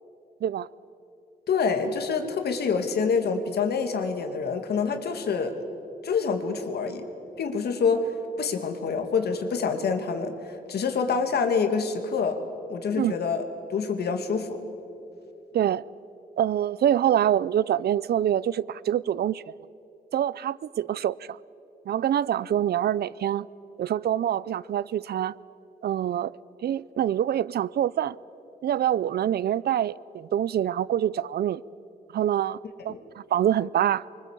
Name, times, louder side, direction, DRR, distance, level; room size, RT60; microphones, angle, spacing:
voice 1, 1.5-5.5 6.0-7.1 7.4-8.1 8.4-12.4 12.7-13.4 13.7-14.6 32.9-33.0, left 5 dB, 90° left, 2.5 m, -26 dB
voice 2, 16.4-19.4 20.1-21.4 21.9-23.5 23.8-25.3 25.8-26.3 26.6-28.2 28.6-31.6 32.1-32.6 32.8-34.0, right 10 dB, 80° right, 0.5 m, -25 dB
25.0 x 24.0 x 8.4 m
wide cardioid pair, 165°, 16 cm